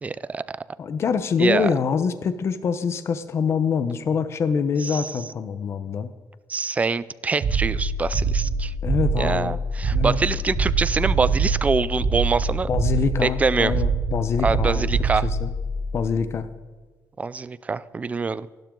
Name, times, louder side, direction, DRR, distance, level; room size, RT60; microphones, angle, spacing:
voice 1, 0.0-0.6 1.4-1.7 4.8-5.0 6.5-8.7 9.2-12.7 13.2-13.7 14.4-15.3 17.2-18.5, right 4 dB, 20° right, 0.5 m, -25 dB
voice 2, 0.8-6.1 8.8-9.6 9.9-10.2 12.7-14.9 15.2-15.5 15.9-16.5, left 6 dB, 45° left, 0.9 m, -25 dB
sound 1, 7.4-16.5, right 3 dB, 50° right, 1.8 m, -25 dB
27.5 x 12.0 x 3.8 m
cardioid pair, 160°, 7 cm